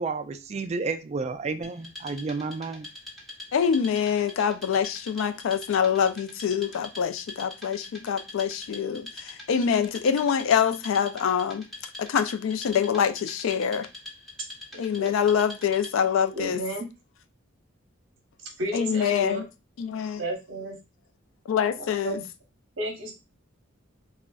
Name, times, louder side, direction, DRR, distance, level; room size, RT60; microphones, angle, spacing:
voice 1, 0.0-2.9, right 4 dB, 35° right, 0.3 m, -31 dB
Wood, 1.6-16.2, left 2 dB, ahead, 0.9 m, -44 dB
voice 2, 3.5-11.7 12.0-13.9 14.8-16.6 18.7-19.5 19.8-20.2 21.5-22.2, left 7 dB, 80° left, 0.3 m, -25 dB
voice 3, 16.3-16.9 18.6-19.4 20.2-20.8 22.0-22.2 22.8-23.1, right 1 dB, 70° right, 0.9 m, -32 dB
3.7 x 2.0 x 2.2 m
head